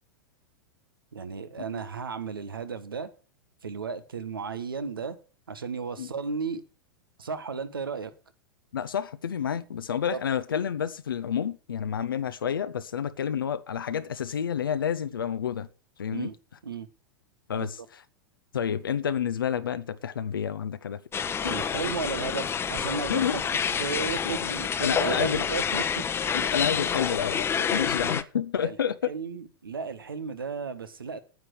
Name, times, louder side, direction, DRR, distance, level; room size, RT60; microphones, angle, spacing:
voice 1, 1.1-3.1 3.6-5.2 5.5-6.6 7.2-8.1 10.1-10.2 16.1-16.3 16.6-16.9 17.5-17.7 21.4-23.4 23.8-26.4 28.6-28.8 29.1-31.2, right 5 dB, 80° right, 1.5 m, -34 dB
voice 2, 8.7-15.7 16.0-16.3 17.5-18.0 18.5-21.0 21.4-21.6 23.1-23.4 24.2-24.5 24.8-25.5 26.3-29.1, left 8 dB, 75° left, 0.7 m, -29 dB
sound 1, 21.1-28.2, left 7 dB, 20° left, 0.9 m, -28 dB
9.4 x 8.3 x 6.5 m
figure-of-eight pair, 95°, 12 cm